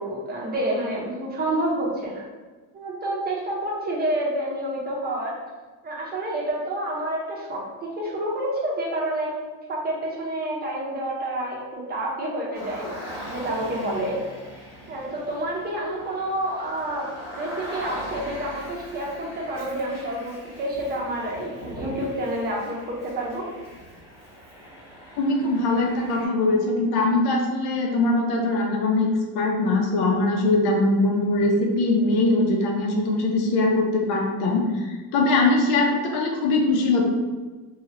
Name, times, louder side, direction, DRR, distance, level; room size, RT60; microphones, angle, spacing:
voice 1, 0.0-2.2 2.7-5.3 5.8-7.6 8.0-9.3 9.7-12.9 13.3-14.2 14.9-17.1 17.3-23.4, right 1 dB, 25° right, -4 dB, 0.7 m, -28 dB
Car, 12.5-26.3, equal, 10° right, 1.2 m, -40 dB
voice 2, 25.2-37.1, left 2 dB, 80° left, 0 dB, 0.8 m, -22 dB
2.9 x 2.4 x 2.9 m, 1.3 s
cardioid pair, 155°, 38 cm